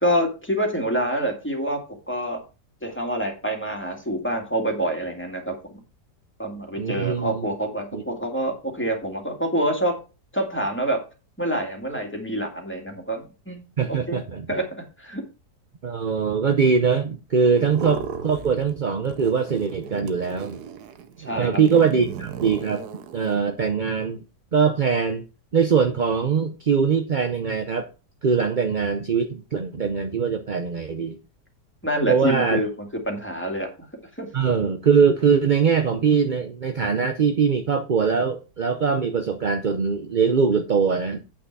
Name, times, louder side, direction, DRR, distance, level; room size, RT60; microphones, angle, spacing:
voice 1, 0.0-1.8 2.1-2.4 2.8-5.6 6.4-10.0 10.3-11.0 11.4-14.2 14.5-14.6 15.0-15.2 17.6-17.7 21.2-21.5 31.8-32.7 33.1-33.7 34.2-34.3, right 1 dB, 5° left, 2 dB, 2.1 m, -26 dB
voice 2, 6.8-7.5 7.9-8.0 13.8-14.5 15.8-20.6 21.4-22.9 23.1-24.2 24.5-25.2 25.5-27.9 28.2-31.2 32.1-32.6 34.3-41.2, right 6 dB, 50° right, 6 dB, 0.5 m, -22 dB
sound 1, 17.6-18.8 19.0-23.4, right 7 dB, 70° right, 1.3 m, -36 dB
8.6 x 6.0 x 4.6 m, 0.32 s
omnidirectional pair, 1.8 m